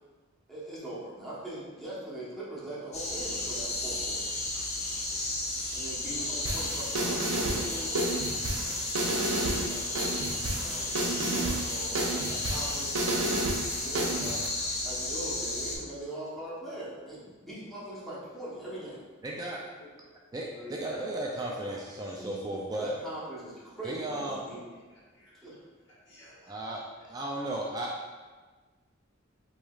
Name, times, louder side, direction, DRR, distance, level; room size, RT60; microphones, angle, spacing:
voice 1, 0.5-4.3 5.7-8.1 9.2-12.9 13.8-14.4 14.8-19.0 22.7-24.6 25.4-25.5, right 1 dB, ahead, -10 dB, 1.0 m, -41 dB
sound 1, 2.9-15.8, left 2 dB, 35° left, 0.8 m, -33 dB
sound 2, 6.5-14.5, right 2 dB, 80° right, 0.6 m, -31 dB
voice 2, 19.2-19.6 20.3-22.9 23.8-24.4 26.5-26.8 27.1-27.9, right 1 dB, 20° right, -3 dB, 0.3 m, -35 dB
voice 3, 20.4-21.8 22.2-22.5 24.9-25.3 26.0-26.5, equal, 60° left, -8 dB, 1.4 m, -49 dB
4.6 x 3.0 x 2.4 m, 1.3 s
head